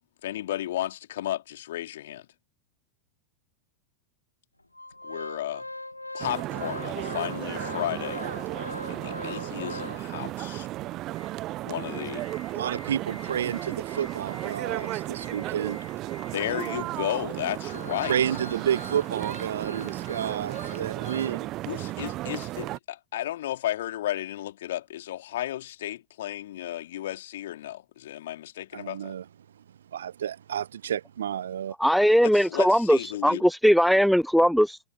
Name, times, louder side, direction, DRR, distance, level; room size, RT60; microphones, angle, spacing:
voice 1, 0.2-2.3 5.0-5.7 6.1-8.3 8.9-10.7 11.6-12.2 16.3-18.2 21.7-29.1 32.3-33.4, left 13 dB, 60° left, 3.0 m, -33 dB
Organ, 4.7-10.3 10.8-10.9 11.2-11.3 11.8-21.4 21.7-21.8, left 2 dB, 85° left, 2.8 m, -42 dB
sound 1, 6.2-22.8, right 16 dB, 35° right, 1.0 m, -34 dB
voice 2, 12.5-15.8 18.1-21.5 28.7-29.2 29.9-31.7, right 9 dB, 65° right, 0.9 m, -30 dB
voice 3, 31.8-34.8, equal, ahead, 0.4 m, -20 dB
figure-of-eight pair, 90°, 0 cm